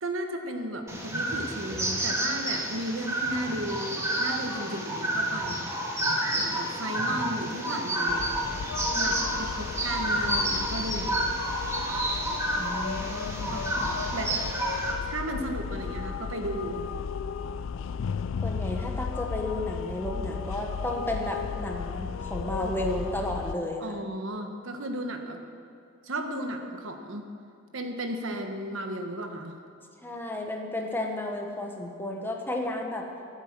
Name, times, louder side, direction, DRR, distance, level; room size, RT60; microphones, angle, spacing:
voice 1, 0.0-5.7 6.3-8.3 9.0-11.3 13.5-14.4 15.0-16.9 23.8-25.4 26.0-27.3 27.7-29.5, right 1 dB, 70° right, 5 dB, 1.2 m, -34 dB
sound 1, 0.9-14.9, right 1 dB, 15° right, 1.9 m, -30 dB
sound 2, 8.1-23.5, left 6 dB, 70° left, 0.4 m, -35 dB
voice 2, 12.5-13.7 18.4-24.0 30.0-33.1, left 1 dB, 10° left, 2 dB, 1.3 m, -33 dB
14.0 x 8.3 x 7.5 m, 2.5 s
head